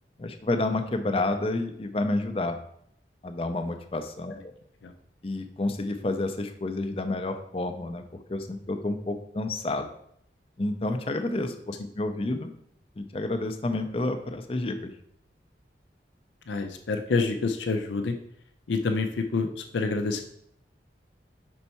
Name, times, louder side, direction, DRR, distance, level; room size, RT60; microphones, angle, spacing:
voice 1, 0.2-2.6 3.2-4.5 5.2-9.9 10.6-12.5 13.0-14.9, left 2 dB, 30° left, 7 dB, 0.4 m, -30 dB
voice 2, 16.5-18.2 18.7-20.2, left 3 dB, 85° left, 6 dB, 0.5 m, -27 dB
5.4 x 4.5 x 4.1 m, 0.70 s
head